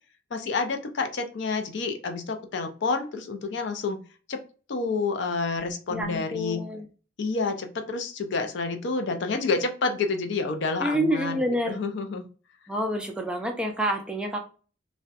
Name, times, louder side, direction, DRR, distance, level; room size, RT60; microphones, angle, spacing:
voice 1, 0.3-4.0 4.3-4.4 4.7-6.6 7.2-12.3, left 4 dB, 65° left, 6 dB, 0.4 m, -29 dB
voice 2, 5.9-6.9 10.8-11.8 12.7-14.4, equal, 5° right, 2 dB, 0.3 m, -28 dB
2.6 x 2.1 x 2.3 m, 0.36 s
head